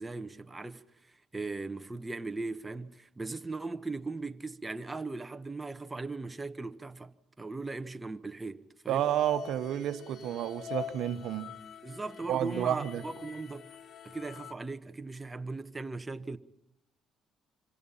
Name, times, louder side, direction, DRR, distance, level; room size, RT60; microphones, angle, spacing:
voice 1, 0.0-9.1 11.8-13.7 14.0-16.4, right 3 dB, 20° right, 1.3 m, -39 dB
sound 1, 8.9-14.5, left 9 dB, 60° left, 1.0 m, -45 dB
voice 2, 8.9-11.5 12.3-13.0, right 11 dB, 70° right, 1.2 m, -30 dB
26.0 x 25.0 x 5.7 m
supercardioid pair, 65°, 0 cm